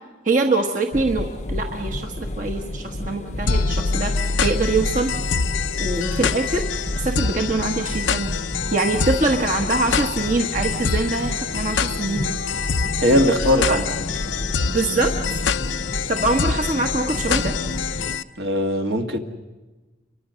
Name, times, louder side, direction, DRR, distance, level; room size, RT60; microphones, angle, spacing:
voice 1, 0.2-5.1 5.8-6.6 7.0-8.3 8.7-12.3 13.7-13.8 14.7-15.1 16.1-17.5, right 2 dB, 45° right, 3 dB, 1.4 m, -23 dB
sound 1, 0.9-18.2, left 1 dB, 40° left, 0.8 m, -31 dB
sound 2, 3.5-18.2, left 5 dB, 85° left, 0.7 m, -25 dB
voice 2, 13.0-13.8 18.4-19.2, equal, 65° right, 4 dB, 2.0 m, -19 dB
29.0 x 24.0 x 6.4 m, 1.2 s
head